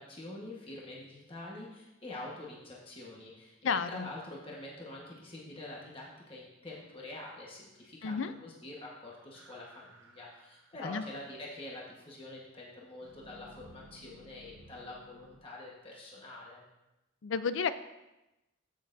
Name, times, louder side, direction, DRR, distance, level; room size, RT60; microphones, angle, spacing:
voice 1, 0.0-16.6, left 2 dB, 25° left, -4 dB, 1.3 m, -46 dB
voice 2, 3.6-4.1 8.0-8.3 10.8-11.0 17.2-17.7, left 5 dB, 70° left, 13 dB, 0.5 m, -31 dB
sound 1, 9.3-11.4 13.0-15.4, right 1 dB, 70° right, 0.8 m, -57 dB
14.5 x 6.5 x 2.6 m, 0.97 s
head